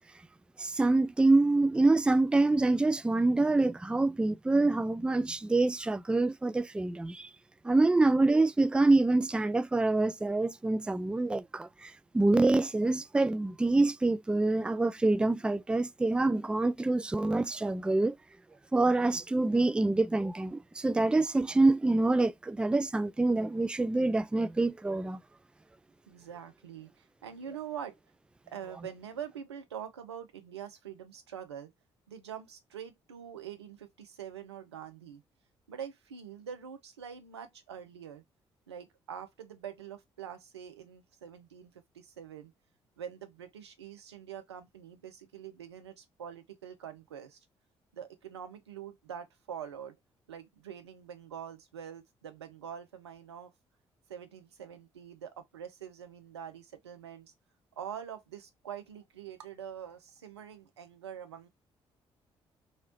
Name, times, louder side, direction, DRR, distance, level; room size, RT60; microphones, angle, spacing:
voice 1, 0.6-7.3 7.6-18.2 18.7-25.2, right 2 dB, 5° right, 0.3 m, -26 dB
voice 2, 26.1-28.0 28.5-31.7 32.1-35.2 35.7-38.2 38.7-42.5 43.0-47.4 47.9-50.0 50.3-53.5 54.1-57.3 57.7-61.5, right 8 dB, 90° right, 0.5 m, -44 dB
2.9 x 2.8 x 2.8 m
figure-of-eight pair, 40°, 14 cm